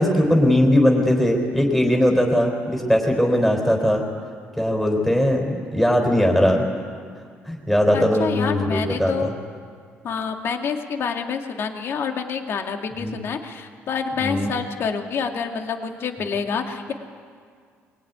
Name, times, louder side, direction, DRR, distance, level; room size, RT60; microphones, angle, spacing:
voice 1, 0.0-4.0 4.6-6.6 7.5-9.3 13.0-13.2 14.2-14.5, equal, ahead, 0 dB, 4.2 m, -19 dB
voice 2, 7.9-9.3 10.0-16.9, left 6 dB, 55° left, 4 dB, 2.3 m, -27 dB
23.5 x 22.0 x 9.6 m, 2.1 s
cardioid pair, 115°, 5 cm